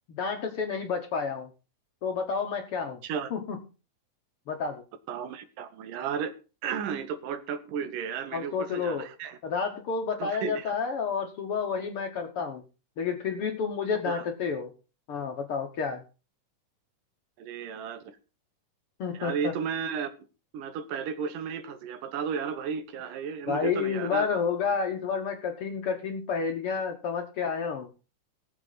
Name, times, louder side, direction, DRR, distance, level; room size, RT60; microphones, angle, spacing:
voice 1, 0.1-1.5 2.0-3.0 3.3-3.6 4.5-4.8 8.3-9.1 9.4-12.6 13.0-14.7 15.1-16.0 19.0-19.5 23.5-27.9, left 5 dB, 60° left, 1.6 m, -30 dB
voice 2, 5.1-6.3 6.6-9.4 10.2-10.7 14.1-14.2 17.4-18.2 19.1-20.1 20.5-24.3, right 7 dB, 80° right, 2.7 m, -33 dB
18.5 x 7.5 x 4.0 m
omnidirectional pair, 3.7 m